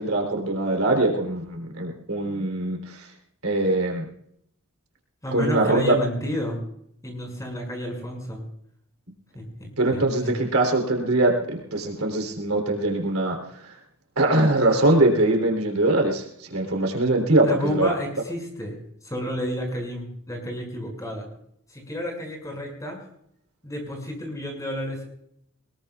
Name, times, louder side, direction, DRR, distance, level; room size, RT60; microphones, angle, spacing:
voice 1, 0.0-3.0 3.4-4.1 5.3-6.0 9.8-13.4 13.6-13.7 14.2-17.9, right 2 dB, 75° right, 2 dB, 3.5 m, -22 dB
voice 2, 5.2-6.6 7.0-8.4 9.3-10.3 17.4-18.8 19.0-21.3 21.7-23.0 23.6-25.0, equal, 15° left, 1 dB, 6.0 m, -31 dB
22.5 x 21.0 x 2.4 m, 0.72 s
head